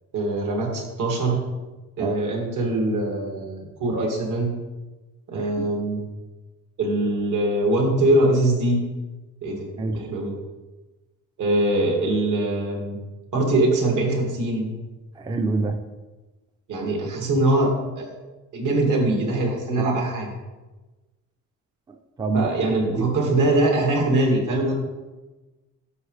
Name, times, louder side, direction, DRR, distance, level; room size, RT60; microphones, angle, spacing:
voice 1, 0.1-1.4 2.0-4.6 5.3-6.0 6.8-8.8 9.4-10.3 11.4-13.0 13.3-14.7 16.7-18.1 18.5-20.3 22.3-24.7, right 2 dB, 75° right, 0 dB, 2.1 m, -22 dB
voice 2, 5.3-5.7 9.8-10.0 15.2-15.8 19.8-20.0 22.2-22.5, right 3 dB, 15° right, 6 dB, 0.4 m, -26 dB
9.5 x 6.2 x 3.2 m, 1.2 s
cardioid pair, 155°, 31 cm